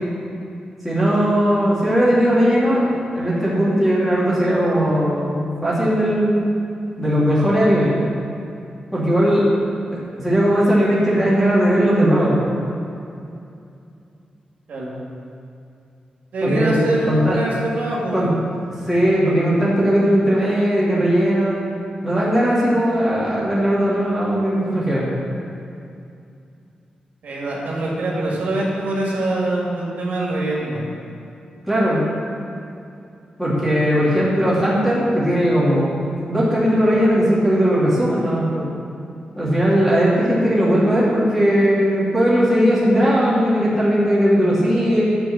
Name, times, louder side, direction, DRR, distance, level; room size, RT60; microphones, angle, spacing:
voice 1, 0.8-6.4 7.0-7.9 8.9-9.5 9.9-12.4 16.4-16.8 17.1-17.4 18.1-18.3 18.9-21.6 22.0-25.1 31.7-32.0 33.4-35.9 36.3-38.6 39.4-45.0, equal, ahead, -9 dB, 2.5 m, -18 dB
voice 2, 16.3-18.1 27.2-30.8, right 1 dB, 80° right, -4 dB, 2.2 m, -24 dB
11.5 x 4.6 x 7.2 m, 2.5 s
wide cardioid pair, 155°, 3 cm